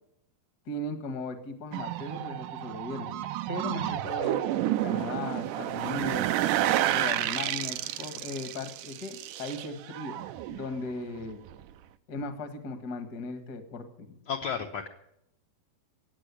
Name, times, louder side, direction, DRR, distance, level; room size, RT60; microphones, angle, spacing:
voice 1, 0.6-4.4 4.7-6.3 6.9-10.2 10.5-11.4 12.1-14.2, left 3 dB, 45° left, 8 dB, 1.3 m, -37 dB
sound 1, 1.7-10.9 11.2-11.6, right 13 dB, 75° right, 2.0 m, -30 dB
voice 2, 14.3-14.9, left 6 dB, 70° left, 2 dB, 1.7 m, -33 dB
15.5 x 8.9 x 9.8 m, 0.78 s
omnidirectional pair, 4.2 m